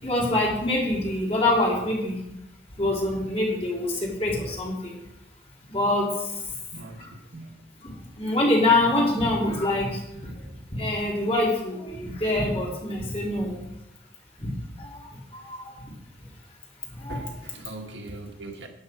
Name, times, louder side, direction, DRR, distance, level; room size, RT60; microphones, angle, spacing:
voice 1, 0.0-2.3 2.8-4.9 5.7-6.1 7.8-10.3 10.8-13.6 14.4-14.5 14.8-15.0 15.3-15.7 17.0-17.3, left 2 dB, 35° left, 3.8 m, -25 dB
voice 2, 6.7-7.1 7.3-7.6 17.1-18.7, right 2 dB, 80° right, 1.4 m, -40 dB
12.5 x 8.3 x 4.6 m
head